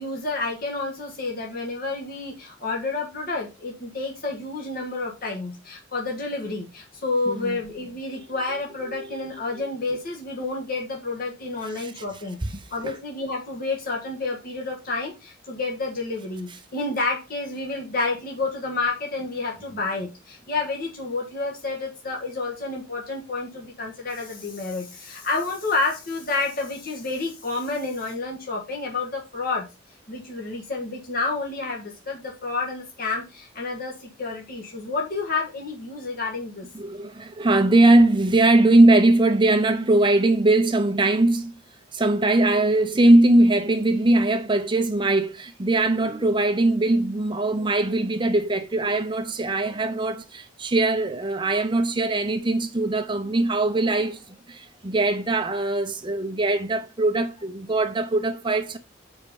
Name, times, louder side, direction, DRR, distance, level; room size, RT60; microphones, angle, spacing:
voice 1, 0.0-12.4 12.7-29.7 30.1-36.7, left 3 dB, 50° left, 1.6 m, -29 dB
voice 2, 7.3-7.6 8.9-9.0 11.8-12.0 12.8-13.0 36.8-41.5 41.9-58.8, right 2 dB, 25° right, 0.7 m, -21 dB
7.2 x 5.0 x 5.2 m
head